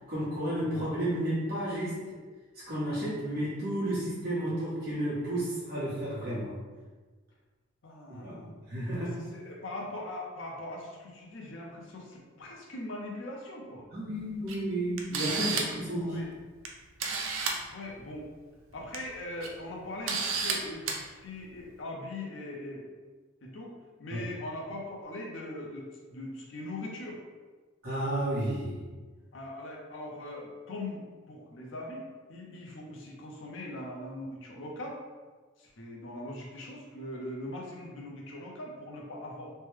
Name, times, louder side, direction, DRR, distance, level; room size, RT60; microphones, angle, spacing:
voice 1, 0.1-2.2 2.7-6.6 8.1-9.3 13.9-16.3 24.1-24.2 27.8-28.8, right 1 dB, 50° right, -9 dB, 1.1 m, -32 dB
voice 2, 7.8-8.5 8.9-13.9 15.3-15.8 16.1-16.3 17.7-18.3 18.7-22.9 23.4-23.7 24.0-27.2 29.3-35.0 35.6-39.5, left 1 dB, 65° left, -1 dB, 0.6 m, -41 dB
Camera, 14.5-14.6 15.0-15.8 16.6-16.7 17.0-17.6 18.7-19.0 19.4-19.5 20.1-20.5 20.9-21.0, right 5 dB, 75° right, 0.5 m, -30 dB
3.2 x 2.1 x 3.2 m, 1.4 s
head